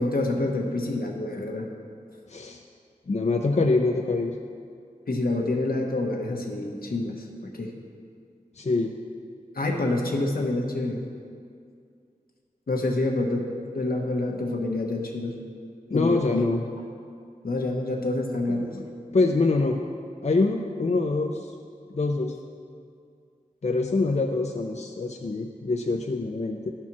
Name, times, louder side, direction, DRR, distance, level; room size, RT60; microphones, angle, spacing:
voice 1, 0.0-1.7 5.1-7.7 9.5-11.0 12.7-13.5 13.7-15.4 15.9-16.6 17.4-18.8, left 2 dB, 80° left, 1 dB, 1.1 m, -27 dB
voice 2, 2.3-2.6 3.1-4.4 8.6-8.9 15.9-16.6 18.6-19.8 20.2-21.5 21.9-22.4 23.6-26.7, left 3 dB, 50° left, 2 dB, 0.5 m, -25 dB
11.0 x 4.4 x 6.0 m, 2.3 s
wide cardioid pair, 55°, 15 cm